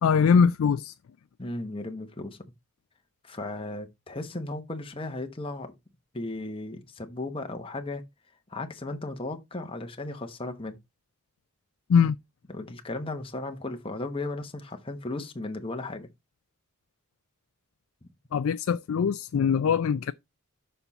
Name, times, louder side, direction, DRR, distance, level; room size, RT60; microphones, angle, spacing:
voice 1, 0.0-0.9 11.9-12.2 18.3-20.1, left 6 dB, 70° left, 0.3 m, -22 dB
voice 2, 1.4-2.4 3.2-5.7 6.1-8.0 8.5-10.8 12.5-16.1 18.0-18.1, left 2 dB, 25° left, 1.0 m, -35 dB
6.9 x 5.6 x 4.0 m
head